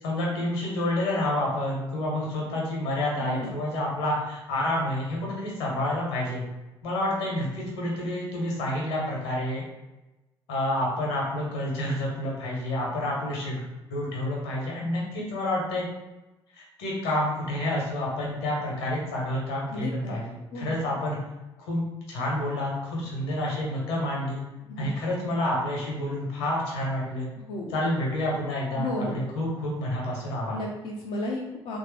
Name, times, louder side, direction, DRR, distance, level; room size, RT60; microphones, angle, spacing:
voice 1, 0.0-6.4 6.8-9.6 10.5-13.6 13.9-15.9 16.5-21.2 21.6-24.5 24.8-27.3 27.7-30.6, left 1 dB, 70° left, -3 dB, 1.0 m, -29 dB
voice 2, 3.2-3.6 19.7-20.7 24.7-24.9 27.5-27.8 28.8-29.2 30.5-31.8, left 1 dB, 55° left, -3 dB, 0.5 m, -34 dB
3.2 x 2.6 x 3.2 m, 1.0 s
figure-of-eight pair, 50°, 14 cm